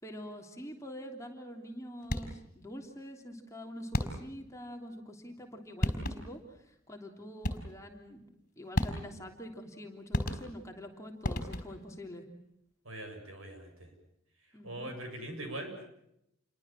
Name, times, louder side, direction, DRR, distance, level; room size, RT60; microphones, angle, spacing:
voice 1, 0.0-8.2 8.6-12.3 14.5-14.9, equal, 15° left, 2 dB, 3.2 m, -45 dB
sound 1, 2.0-2.5 3.9-4.5 5.5-5.6 5.8-6.5 7.4-7.9 8.8-9.3 10.1-10.8 11.2-11.9, left 1 dB, 40° left, 4.2 m, -34 dB
voice 2, 12.8-13.9 14.6-15.9, right 1 dB, 80° right, 5 dB, 7.7 m, -42 dB
29.0 x 23.0 x 7.5 m, 0.80 s
head